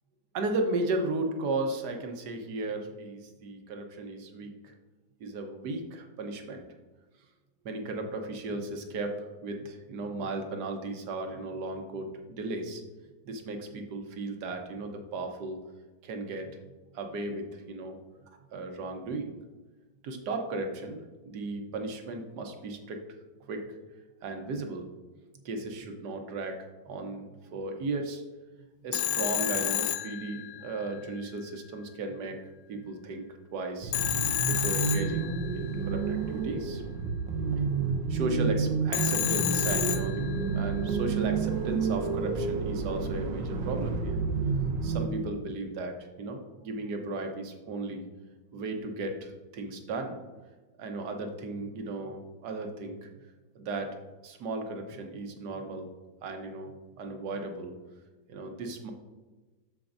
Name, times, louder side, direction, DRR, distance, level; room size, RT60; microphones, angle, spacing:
voice 1, 0.3-4.7 5.2-6.6 7.6-12.8 13.3-15.6 16.0-16.5 16.9-18.0 18.5-19.3 20.0-23.0 23.5-23.6 24.2-24.8 25.4-26.5 26.8-27.2 27.5-28.2 28.8-32.4 32.7-33.3 33.5-33.9 34.4-36.8 38.1-44.2 44.8-48.0 48.5-50.2 50.8-53.1 53.5-53.9 54.2-55.9 56.2-57.7 58.3-58.9, right 2 dB, 65° right, 4 dB, 1.4 m, -35 dB
Telephone, 28.9-30.9 33.9-35.7 38.9-40.6, left 12 dB, 70° left, 1.0 m, -30 dB
sound 1, 33.8-45.1, right 5 dB, 85° right, 1.5 m, -30 dB
13.0 x 4.5 x 2.6 m, 1.2 s
omnidirectional pair, 2.0 m